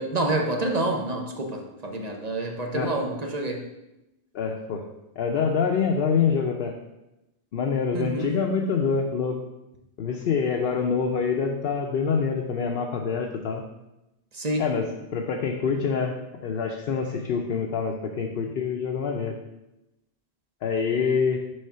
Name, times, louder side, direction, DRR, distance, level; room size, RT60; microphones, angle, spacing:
voice 1, 0.0-3.6 7.9-8.3 14.3-14.6, right 2 dB, 40° right, 2 dB, 0.8 m, -28 dB
voice 2, 4.3-4.8 5.2-6.7 7.5-9.4 10.0-13.6 14.6-16.1 16.4-19.4 20.6-21.4, left 6 dB, 60° left, 2 dB, 0.8 m, -26 dB
6.5 x 3.5 x 5.6 m, 0.93 s
omnidirectional pair, 1.1 m